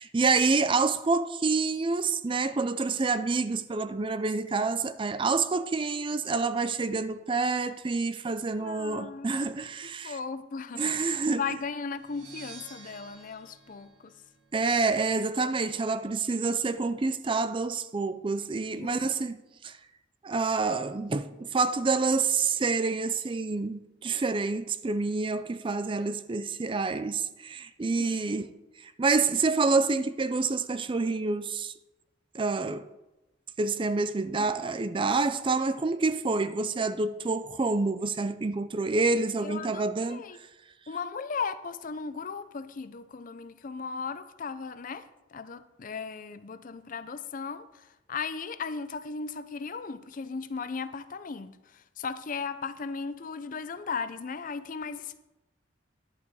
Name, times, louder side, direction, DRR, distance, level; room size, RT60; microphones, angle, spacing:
voice 1, 0.0-10.2 10.8-11.6 14.5-19.8 20.2-31.7 32.3-32.9 33.6-40.2, right 4 dB, 25° right, 0.4 m, -28 dB
voice 2, 8.6-9.3 10.0-14.1 18.7-19.0 28.0-28.5 34.4-34.5 39.4-40.4 40.9-55.2, left 5 dB, 45° left, 0.5 m, -37 dB
sound 1, 11.9-14.8, right 5 dB, 70° right, 2.6 m, -50 dB
11.0 x 8.2 x 4.7 m
head